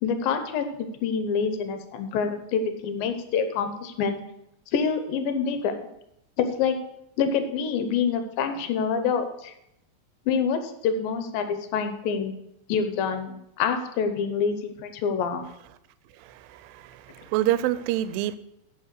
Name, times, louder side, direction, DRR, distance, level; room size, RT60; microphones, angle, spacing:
voice 1, 0.0-4.2 4.7-5.7 6.4-6.8 7.2-9.5 10.3-12.3 12.7-15.5, left 6 dB, 80° left, 8 dB, 2.6 m, -26 dB
voice 2, 16.2-18.4, right 13 dB, 80° right, 14 dB, 2.2 m, -27 dB
9.7 x 5.2 x 6.5 m, 0.82 s
omnidirectional pair, 4.1 m